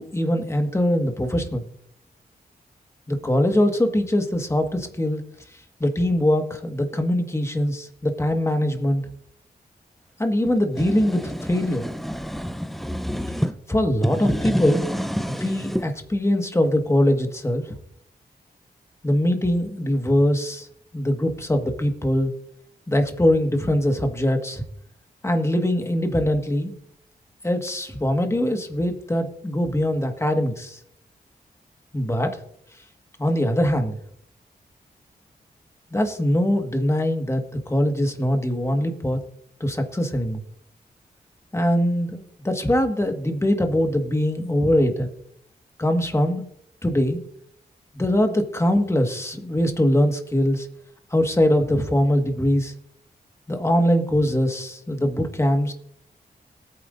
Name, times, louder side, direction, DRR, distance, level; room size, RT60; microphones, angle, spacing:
voice 1, 0.0-1.6 3.1-5.2 5.8-9.0 10.2-11.8 13.7-14.8 15.2-17.8 19.0-20.7 20.9-22.3 22.9-24.6 25.2-26.7 27.4-30.8 31.9-32.4 33.2-34.0 35.9-39.2 39.6-40.4 41.5-45.1 45.8-46.4 46.8-47.2 47.9-50.7 51.1-52.7 53.5-55.7, left 1 dB, 15° left, 5 dB, 1.7 m, -22 dB
sound 1, 10.4-13.5 13.9-15.9, equal, ahead, 0.7 m, -28 dB
19.5 x 9.1 x 2.6 m, 0.71 s
cardioid pair, 70°, 16 cm